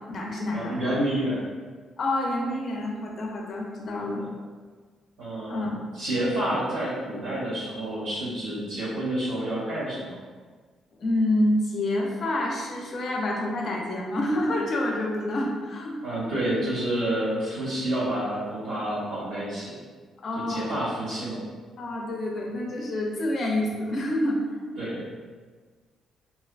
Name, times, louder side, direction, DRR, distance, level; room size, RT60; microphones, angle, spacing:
voice 1, 0.0-0.8 2.0-4.2 5.5-5.8 11.0-16.0 20.2-20.7 21.8-24.4, left 1 dB, 50° left, -1 dB, 0.5 m, -27 dB
voice 2, 0.5-1.4 3.9-4.3 5.2-5.6 5.9-10.2 16.0-19.8 20.3-21.4 24.8-25.0, right 1 dB, 80° right, -9 dB, 1.4 m, -29 dB
2.4 x 2.1 x 2.3 m, 1.5 s
cardioid pair, 90°, 0 cm